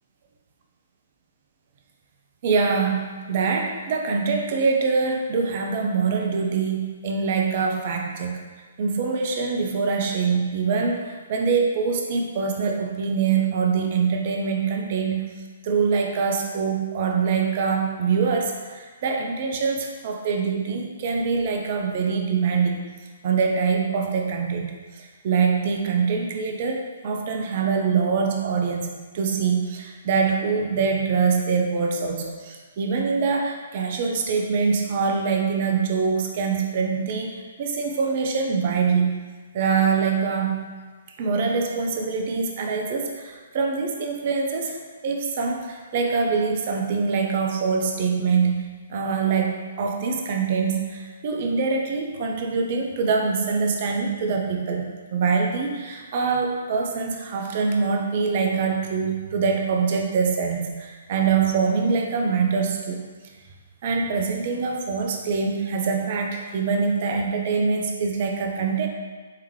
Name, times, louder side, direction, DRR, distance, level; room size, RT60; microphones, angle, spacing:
voice 1, 2.4-8.4 8.8-15.2 15.6-22.8 23.2-39.2 39.5-40.6 41.2-44.8 45.0-48.6 48.9-54.8 55.1-63.0 63.8-68.9, right 5 dB, 45° right, 2 dB, 0.7 m, -24 dB
4.6 x 3.5 x 3.2 m, 1.4 s
figure-of-eight pair, 125°, 0 cm